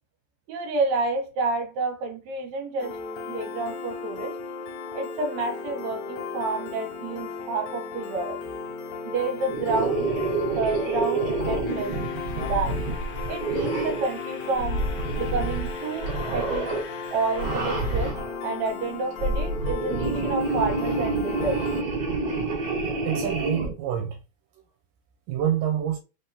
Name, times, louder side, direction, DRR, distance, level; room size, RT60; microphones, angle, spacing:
voice 1, 0.5-3.0 3.3-4.3 4.9-8.4 9.0-10.1 10.6-12.0 12.4-12.8 13.3-14.8 15.2-16.7 17.1-18.2 18.4-21.6, right 3 dB, 65° right, 2.3 m, -29 dB
Piano, 2.8-21.8, left 5 dB, 75° left, 1.9 m, -36 dB
sound 1, 9.5-14.1 14.6-15.7 16.0-16.8 17.3-18.3 19.0-23.7, right 3 dB, 35° right, 1.6 m, -28 dB
sound 2, 11.6-18.1, left 4 dB, 55° left, 1.6 m, -44 dB
voice 2, 23.0-24.2 25.3-26.0, right 10 dB, 85° right, 2.2 m, -27 dB
5.0 x 3.5 x 2.8 m
omnidirectional pair, 3.7 m